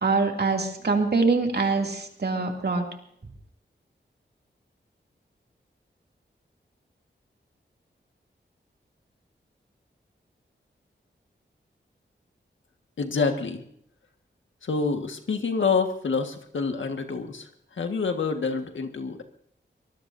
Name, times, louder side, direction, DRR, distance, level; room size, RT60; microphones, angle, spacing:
voice 1, 0.0-2.8, right 4 dB, 55° right, 2 dB, 2.7 m, -24 dB
voice 2, 13.0-13.6 14.6-19.2, left 4 dB, 90° left, 5 dB, 1.7 m, -27 dB
24.0 x 19.5 x 2.7 m, 0.69 s
wide cardioid pair, 110°, 19 cm